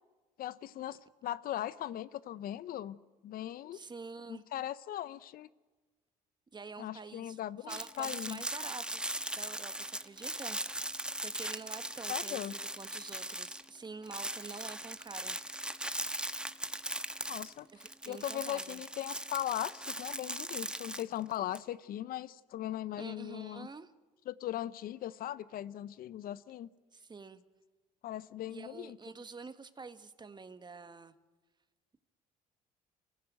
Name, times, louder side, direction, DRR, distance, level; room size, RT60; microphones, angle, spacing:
voice 1, 0.4-3.0 3.2-3.8 4.3-5.5 6.8-8.4 12.1-12.5 17.3-17.7 18.1-23.7 24.3-26.7 28.0-29.0, left 12 dB, 60° left, 17 dB, 0.7 m, -39 dB
voice 2, 3.7-4.4 6.5-7.4 7.7-10.6 11.2-15.7 17.7-18.8 23.0-23.9 26.9-27.4 28.5-31.1, right 4 dB, 25° right, 11 dB, 1.5 m, -48 dB
sound 1, 7.7-13.8 14.0-21.6, right 1 dB, 5° right, 1.2 m, -39 dB
25.0 x 15.0 x 9.4 m, 1.3 s
supercardioid pair, 70°, 17 cm